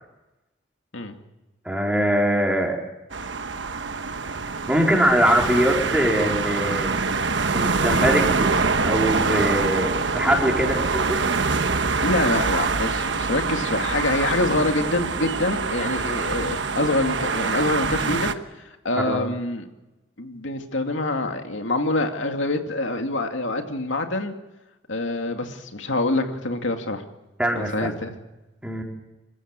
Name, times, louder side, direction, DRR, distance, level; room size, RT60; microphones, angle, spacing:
voice 1, 1.6-2.8 4.7-7.0 7.5-8.5 8.8-11.2 19.0-19.2 27.4-27.9 28.6-28.8, equal, 5° right, 0 dB, 4.2 m, -22 dB
sound 1, 3.1-18.3, right 4 dB, 70° right, 1.2 m, -25 dB
voice 2, 12.0-18.3 18.6-19.7 20.2-24.3 24.9-27.0 27.5-28.1, left 2 dB, 90° left, 5 dB, 2.4 m, -25 dB
26.0 x 15.0 x 8.9 m, 1.0 s
head